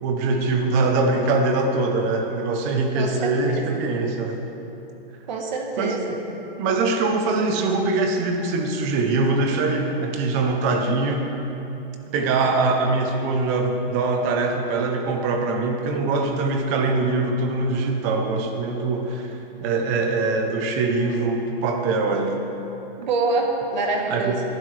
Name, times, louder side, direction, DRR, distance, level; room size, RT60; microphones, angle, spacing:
voice 1, 0.0-4.4 5.8-6.2 6.6-11.3 12.1-22.4 24.1-24.4, right 3 dB, 15° right, 4 dB, 0.6 m, -23 dB
voice 2, 2.9-3.6 5.3-6.2 23.0-24.4, right 3 dB, 50° right, 2 dB, 1.3 m, -25 dB
18.5 x 11.5 x 3.3 m, 3.0 s
hypercardioid pair, 170°, 30 cm